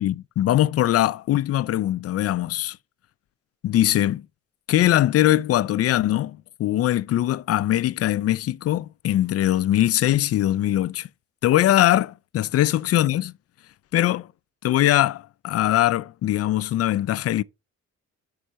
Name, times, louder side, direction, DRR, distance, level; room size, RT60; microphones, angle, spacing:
voice 1, 0.0-2.8 3.6-4.2 4.7-11.1 11.4-13.3 13.9-14.3 14.6-17.4, left 13 dB, 55° left, 0.4 m, -21 dB
5.6 x 4.2 x 6.2 m
cardioid pair, 90°, 30 cm